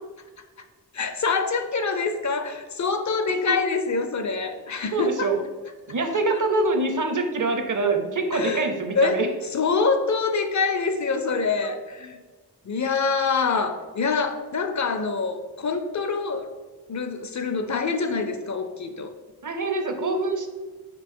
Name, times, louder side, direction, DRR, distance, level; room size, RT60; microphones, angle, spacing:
voice 1, 0.9-5.3 6.3-6.4 8.3-8.7 8.9-9.3 9.5-12.2 12.6-16.5 16.9-19.1, left 4 dB, 45° left, 8 dB, 0.5 m, -25 dB
voice 2, 4.9-5.4 5.9-9.3 11.6-11.7 19.4-20.5, right 3 dB, 50° right, 5 dB, 0.7 m, -25 dB
5.2 x 2.4 x 3.7 m, 1.3 s
cardioid pair, 40°, 40 cm